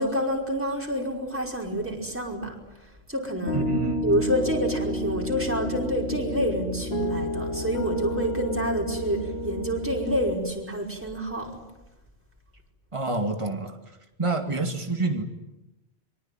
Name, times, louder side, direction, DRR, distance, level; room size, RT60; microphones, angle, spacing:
voice 1, 0.0-2.5 3.1-3.7 4.0-11.6, equal, 10° right, -1 dB, 5.2 m, -28 dB
Piano, 3.5-10.4, equal, 70° left, 3.1 m, -30 dB
voice 2, 3.5-4.1 12.9-15.2, right 2 dB, 30° right, 4 dB, 2.6 m, -28 dB
25.5 x 24.5 x 9.3 m, 0.95 s
omnidirectional pair, 1.1 m